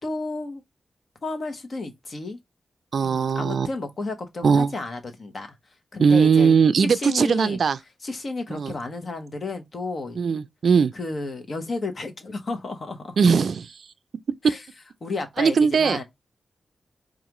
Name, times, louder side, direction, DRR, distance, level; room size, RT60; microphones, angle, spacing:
voice 1, 0.0-0.6 1.2-2.4 3.0-5.5 5.9-7.6 8.0-10.2 10.9-13.2 14.4-14.6 15.0-16.0, left 3 dB, 55° left, 1.0 m, -32 dB
voice 2, 2.9-3.7 4.4-4.7 6.0-7.8 8.5-8.7 10.2-10.9 13.2-13.9 15.4-16.0, right 6 dB, 75° right, 0.3 m, -19 dB
4.7 x 2.5 x 3.0 m
cardioid pair, 65°, 0 cm